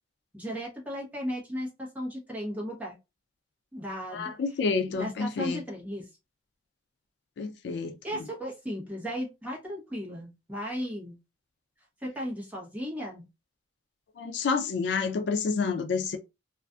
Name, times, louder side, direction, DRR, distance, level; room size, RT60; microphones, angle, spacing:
voice 1, 0.3-2.9 3.7-4.3 4.9-6.1 8.0-11.2 12.0-13.3, equal, 10° right, 0.8 m, -35 dB
voice 2, 4.1-5.6 7.4-8.2 14.2-16.2, left 4 dB, 65° left, 0.3 m, -29 dB
2.5 x 2.4 x 2.2 m
head